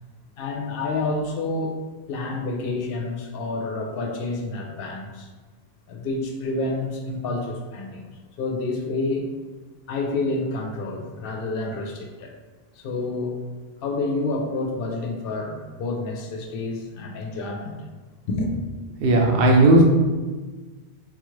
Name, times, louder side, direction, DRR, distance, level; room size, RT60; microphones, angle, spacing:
voice 1, 0.4-1.7 2.1-5.3 5.9-8.1 8.4-9.3 9.9-12.3 12.7-13.4 13.8-17.8 18.3-18.6, left 2 dB, 65° left, 1 dB, 0.7 m, -28 dB
voice 2, 19.0-19.8, right 2 dB, 65° right, 0 dB, 0.8 m, -15 dB
3.7 x 2.4 x 3.1 m, 1.3 s
omnidirectional pair, 1.1 m